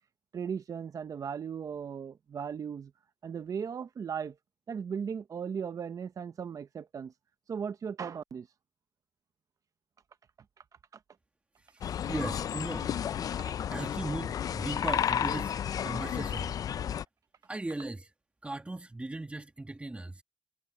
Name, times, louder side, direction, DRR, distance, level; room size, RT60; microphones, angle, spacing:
voice 1, 0.3-2.9 3.2-4.4 4.7-7.1 7.5-8.5 12.0-12.1 13.4-13.6, right 7 dB, 70° right, 1.1 m, -37 dB
voice 2, 11.6-12.9 13.7-16.5 17.4-18.1 18.4-20.2, right 2 dB, 20° right, 1.8 m, -38 dB
sound 1, 11.8-17.0, left 9 dB, 80° left, 0.5 m, -32 dB
cardioid pair, 70°, 6 cm